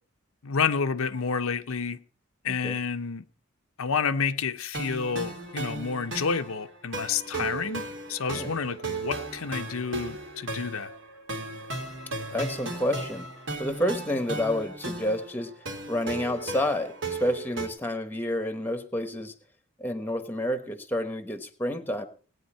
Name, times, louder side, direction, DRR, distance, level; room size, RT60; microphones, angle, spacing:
voice 1, 0.4-2.0 2.4-3.2 3.8-7.8 8.1-10.9, left 5 dB, 75° left, 0.7 m, -29 dB
sound 1, 4.7-17.7, right 3 dB, 60° right, 2.5 m, -36 dB
voice 2, 12.3-13.3 13.6-15.5 15.9-19.3 19.8-22.0, left 1 dB, 10° left, 1.1 m, -29 dB
18.5 x 9.4 x 4.4 m
head